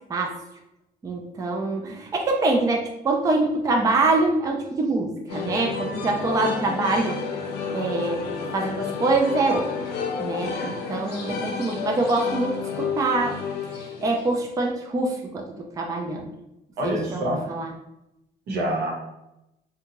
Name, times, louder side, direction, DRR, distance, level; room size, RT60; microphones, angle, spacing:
voice 1, 1.0-7.2 7.7-8.2 8.5-9.7 10.2-13.4 13.8-16.3 16.8-17.7, right 2 dB, 20° right, 1 dB, 0.4 m, -25 dB
sound 1, 5.3-14.5, left 5 dB, 75° left, 0.5 m, -31 dB
voice 2, 16.8-17.4 18.5-18.9, right 1 dB, 70° right, -1 dB, 0.9 m, -26 dB
2.7 x 2.2 x 2.9 m, 0.87 s
cardioid pair, 110°, 17 cm